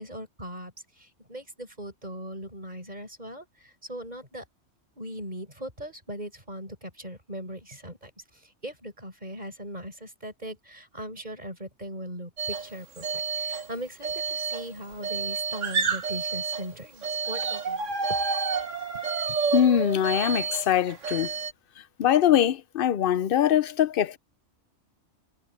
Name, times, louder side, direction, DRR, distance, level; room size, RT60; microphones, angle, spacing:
voice 1, 0.0-4.4 5.0-13.1 13.3-18.2, right 1 dB, 35° right, 7.2 m, -39 dB
sound 1, 12.4-12.7 13.0-13.7 14.0-16.7 17.0-21.5, right 5 dB, 85° right, 1.9 m, -29 dB
voice 2, 19.5-21.3 22.0-24.2, left 10 dB, 55° left, 0.7 m, -22 dB
omnidirectional pair, 1.3 m